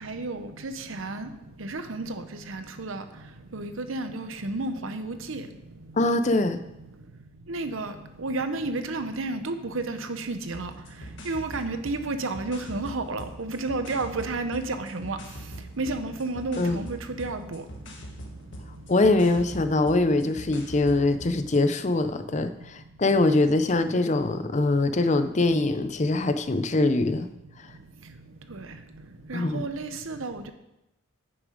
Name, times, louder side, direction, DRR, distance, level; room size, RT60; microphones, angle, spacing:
voice 1, 0.0-1.3 1.6-2.1 2.5-3.0 3.5-5.4 7.5-7.9 8.2-10.7 11.3-15.2 15.8-17.6 29.3-30.5, right 3 dB, 75° right, 9 dB, 0.8 m, -31 dB
voice 2, 6.0-6.6 16.6-16.8 18.9-27.3 29.3-29.6, left 2 dB, 35° left, 10 dB, 0.5 m, -23 dB
sound 1, 10.5-21.7, equal, 60° left, 1.6 m, -43 dB
9.6 x 7.0 x 5.0 m, 0.90 s
head